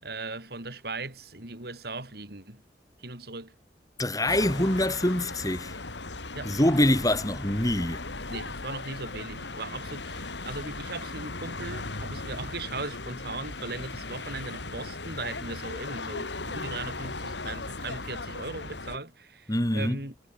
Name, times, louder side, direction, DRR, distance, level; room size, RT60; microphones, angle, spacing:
voice 1, 0.0-2.6 3.0-3.5 6.3-6.6 8.3-20.1, right 3 dB, 60° right, 4.8 m, -38 dB
voice 2, 4.0-5.8 6.4-8.1 19.5-20.0, left 1 dB, 20° left, 4.5 m, -25 dB
sound 1, 4.3-19.0, left 3 dB, 85° left, 3.4 m, -37 dB
head